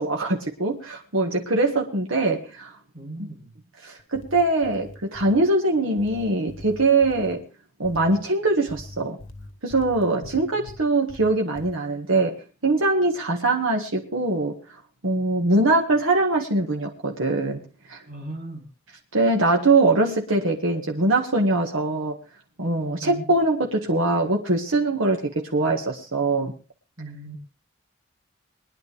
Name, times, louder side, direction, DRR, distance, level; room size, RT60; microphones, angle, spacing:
voice 1, 0.0-2.7 3.2-3.3 3.8-7.4 7.8-9.2 9.6-12.4 12.6-14.6 15.0-17.6 17.9-18.0 19.1-22.2 22.6-26.5, right 2 dB, 85° right, 1.7 m, -22 dB
voice 2, 2.9-3.5 10.2-10.7 18.1-18.7 23.0-23.2 27.0-27.4, right 2 dB, 45° right, 3.2 m, -38 dB
sound 1, 4.0-5.4 6.0-7.4 7.8-8.2 8.7-10.8 11.1-11.7, left 2 dB, 75° left, 1.8 m, -43 dB
22.0 x 10.5 x 3.4 m
head